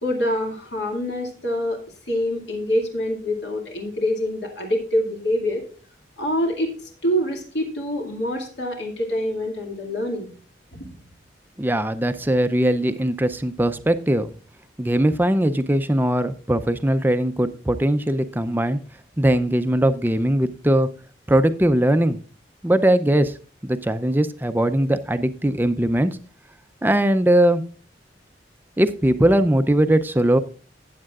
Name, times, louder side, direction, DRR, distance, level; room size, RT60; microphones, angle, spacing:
voice 1, 0.0-1.8 2.1-5.6 6.2-6.7 7.0-10.3, left 1 dB, 65° left, 1 dB, 2.2 m, -25 dB
voice 2, 11.6-14.3 14.8-18.8 19.2-20.9 21.3-22.2 22.6-23.3 23.6-26.1 26.8-27.6 28.8-30.4, right 1 dB, 10° right, 11 dB, 0.5 m, -20 dB
14.0 x 8.7 x 2.4 m, 0.40 s
head